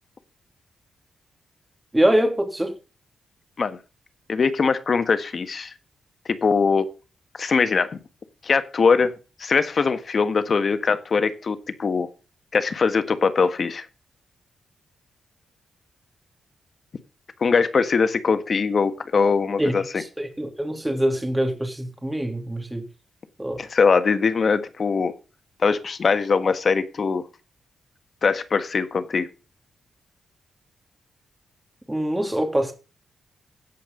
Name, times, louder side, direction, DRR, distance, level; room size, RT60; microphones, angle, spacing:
voice 1, 1.9-2.7 19.6-19.7 20.2-22.8 23.4-23.6 31.9-32.7, right 1 dB, 10° right, 3.0 m, -23 dB
voice 2, 4.3-5.7 6.4-6.9 7.4-7.9 8.4-9.1 9.4-12.1 12.5-13.9 17.4-19.8 23.6-25.1 25.6-27.3 28.2-29.3, left 5 dB, 50° left, 1.5 m, -21 dB
16.0 x 5.5 x 5.3 m
cardioid pair, 85°, 0 cm